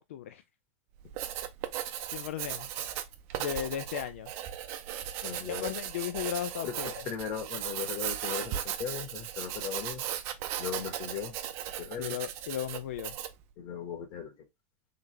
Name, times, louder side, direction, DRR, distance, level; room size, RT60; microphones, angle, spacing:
voice 1, 0.1-0.4 2.1-2.7 3.4-4.3 5.5-6.9 12.0-13.2, left 10 dB, 75° left, 0.4 m, -35 dB
Writing, 1.0-13.4, right 11 dB, 35° right, 0.6 m, -37 dB
voice 2, 5.2-5.7 6.6-6.7 7.1-10.0 10.6-11.4 11.8-12.2 13.6-14.5, left 8 dB, 40° left, 1.7 m, -37 dB
3.9 x 3.4 x 3.1 m
supercardioid pair, 165°, 7 cm